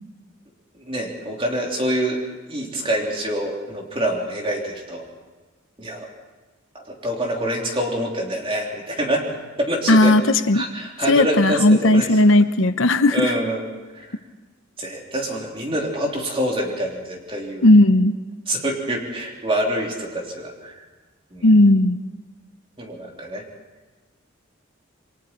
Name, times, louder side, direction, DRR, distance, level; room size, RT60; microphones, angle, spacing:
voice 1, 0.7-2.2 2.5-5.0 5.8-6.1 6.7-9.3 9.6-10.1 10.5-12.1 13.1-13.6 13.9-14.1 14.8-17.6 18.5-20.8 21.3-21.5 22.8-23.4, right 1 dB, 25° right, 0 dB, 3.3 m, -26 dB
voice 2, 9.9-10.6 11.1-13.3 17.6-18.2 21.4-22.0, left 1 dB, 70° left, 10 dB, 0.9 m, -15 dB
28.0 x 22.5 x 4.5 m, 1.3 s
head